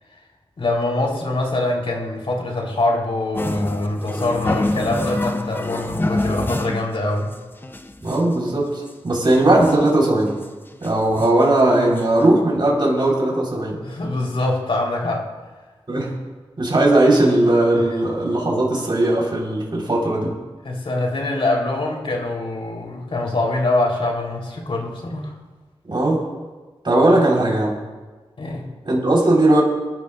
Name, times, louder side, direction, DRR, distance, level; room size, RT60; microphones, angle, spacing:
voice 1, 0.6-7.3 13.8-15.3 20.6-25.3 28.4-28.7, left 2 dB, 70° left, -1 dB, 3.8 m, -24 dB
sound 1, 3.3-6.9 7.3-7.4 7.6-8.4 8.9-9.0 9.2-9.9 10.4-10.5 10.8-11.5 12.0-12.1 12.3-12.4, left 2 dB, 20° left, 0.7 m, -26 dB
voice 2, 8.0-10.3 10.8-13.8 15.9-16.1 16.6-20.3 25.8-26.2 26.8-27.8 28.8-29.6, right 1 dB, 50° right, -3 dB, 4.4 m, -18 dB
26.0 x 12.0 x 2.6 m, 1.3 s
wide cardioid pair, 75°, 10 cm